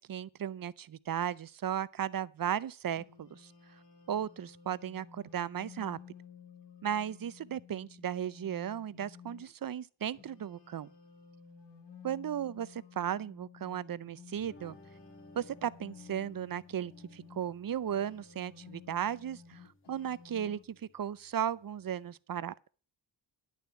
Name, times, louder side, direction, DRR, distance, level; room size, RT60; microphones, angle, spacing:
voice 1, 0.0-3.5 4.1-6.0 6.8-10.9 12.0-14.8 15.3-19.6 19.9-22.5, right 9 dB, 50° right, 0.5 m, -36 dB
sound 1, 2.8-9.5 10.1-17.5 17.9-20.6, left 7 dB, 65° left, 2.0 m, -54 dB
sound 2, 14.3-22.1, left 2 dB, 25° left, 1.7 m, -60 dB
11.0 x 6.9 x 7.3 m
wide cardioid pair, 120°, 46 cm